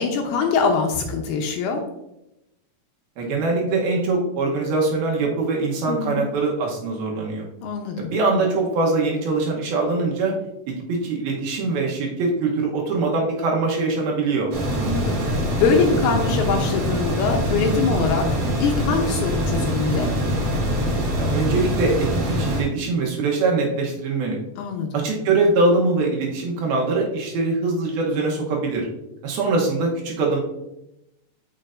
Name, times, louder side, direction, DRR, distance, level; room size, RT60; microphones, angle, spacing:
voice 1, 0.0-1.8 5.9-6.2 7.6-8.1 14.7-18.2 18.6-20.1 24.6-24.9, left 5 dB, 80° left, 3 dB, 2.4 m, -23 dB
voice 2, 3.2-7.5 8.0-10.3 10.9-14.5 21.2-24.4 24.9-28.9 29.2-30.4, right 3 dB, 70° right, -1 dB, 2.5 m, -22 dB
sound 1, 14.5-22.6, equal, 55° right, 2.6 m, -24 dB
6.7 x 6.3 x 2.5 m, 0.87 s
omnidirectional pair, 5.0 m